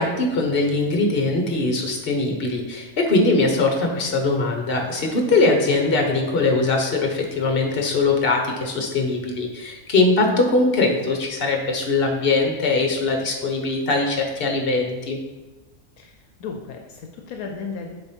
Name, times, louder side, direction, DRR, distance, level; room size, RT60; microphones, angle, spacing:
voice 1, 0.0-15.2, left 3 dB, 40° left, 2 dB, 1.3 m, -21 dB
voice 2, 16.0-17.9, left 5 dB, 75° left, 3 dB, 1.1 m, -35 dB
7.0 x 5.2 x 4.6 m, 1.1 s
omnidirectional pair, 1.6 m